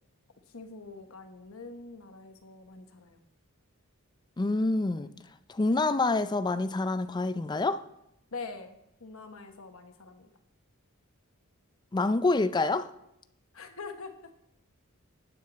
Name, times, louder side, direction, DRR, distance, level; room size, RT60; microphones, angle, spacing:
voice 1, 0.5-3.2 8.3-10.3 13.5-14.1, left 4 dB, 70° left, 1.1 m, -44 dB
voice 2, 4.4-5.1 5.5-7.8 11.9-12.9, left 3 dB, 20° left, 0.4 m, -27 dB
9.6 x 8.6 x 4.1 m
head